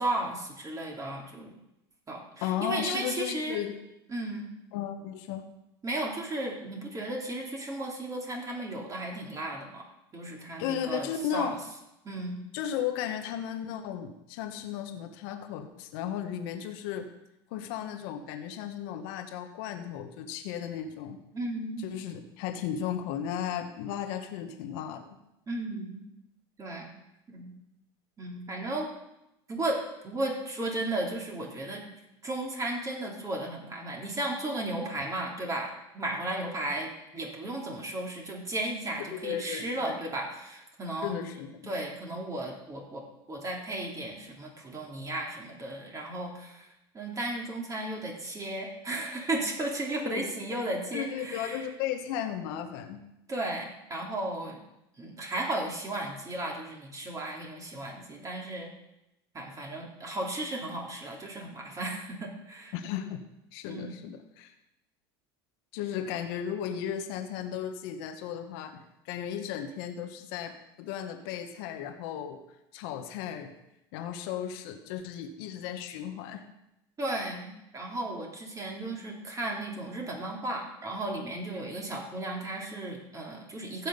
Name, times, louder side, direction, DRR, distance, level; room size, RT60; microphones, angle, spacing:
voice 1, 0.0-1.5 2.1-3.6 4.1-4.5 5.8-9.8 10.1-11.6 12.0-12.4 21.3-21.9 25.5-26.0 26.6-26.9 27.3-27.5 28.2-28.9 29.5-31.8 32.2-41.2 41.7-43.0 43.3-46.7 46.9-51.7 53.3-54.6 55.0-58.7 59.3-62.7 63.7-64.0 77.0-83.9, right 1 dB, 25° right, -1 dB, 3.2 m, -35 dB
voice 2, 2.4-3.8 4.7-5.5 10.6-11.6 12.5-17.1 17.5-21.2 21.8-25.1 39.0-40.0 41.0-41.7 50.0-50.3 50.9-53.0 62.7-63.2 63.5-64.5 65.7-72.4 72.7-73.5 73.9-76.4, left 9 dB, 70° left, 6 dB, 1.4 m, -35 dB
15.5 x 6.2 x 5.5 m, 0.87 s
supercardioid pair, 95°, 13 cm